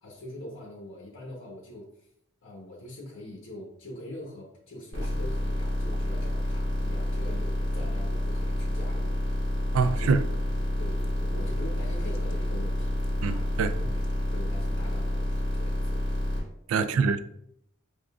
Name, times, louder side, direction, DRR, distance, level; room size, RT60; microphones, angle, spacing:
voice 1, 0.0-2.1 2.4-9.2 9.8-10.2 10.8-13.0 13.3-14.0 14.3-16.0 16.7-17.1, left 1 dB, 80° left, 1.0 m, -43 dB
sound 1, 4.9-16.4, left 1 dB, 55° right, 1.5 m, -29 dB
sound 2, 9.6-14.7, left 2 dB, 40° left, 0.4 m, -51 dB
voice 2, 9.7-10.2 13.2-13.8 16.7-17.2, right 5 dB, 80° right, 0.3 m, -25 dB
5.0 x 3.6 x 2.3 m
head